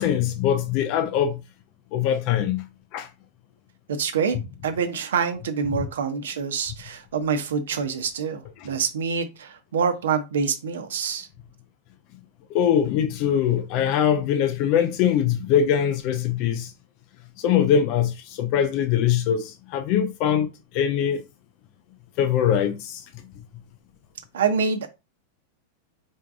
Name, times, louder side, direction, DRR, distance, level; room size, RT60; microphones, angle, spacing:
voice 1, 0.0-1.4 1.9-2.6 2.9-3.1 5.7-5.9 12.5-16.7 17.4-20.5 20.7-21.2 22.2-23.0, left 9 dB, 45° left, 0.5 m, -22 dB
voice 2, 3.9-4.4 4.6-11.3 24.3-24.9, right 6 dB, 60° right, 0.8 m, -26 dB
4.6 x 4.4 x 2.5 m
figure-of-eight pair, 90°, 0 cm